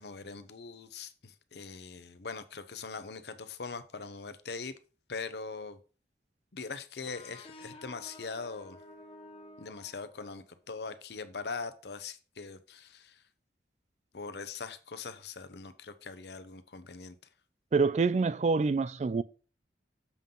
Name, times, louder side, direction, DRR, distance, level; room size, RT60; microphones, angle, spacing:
voice 1, 0.0-4.7 5.1-5.8 6.5-8.8 9.6-13.2 14.1-17.1, left 4 dB, 70° left, 0.8 m, -41 dB
sound 1, 7.1-10.6, left 2 dB, 30° left, 1.0 m, -51 dB
voice 2, 17.7-19.2, right 4 dB, 40° right, 0.3 m, -26 dB
7.2 x 3.8 x 5.5 m
head